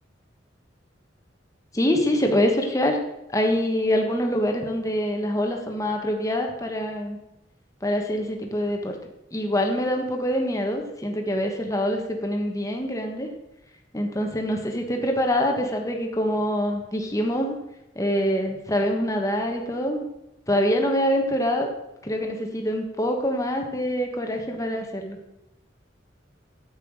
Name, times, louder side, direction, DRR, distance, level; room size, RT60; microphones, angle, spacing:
voice 1, 1.7-3.0 3.3-7.2 7.8-8.9 9.3-13.3 13.9-17.6 17.9-20.0 20.5-21.7 22.0-25.2, equal, 15° left, 2 dB, 1.3 m, -25 dB
9.3 x 8.2 x 4.8 m, 0.89 s
head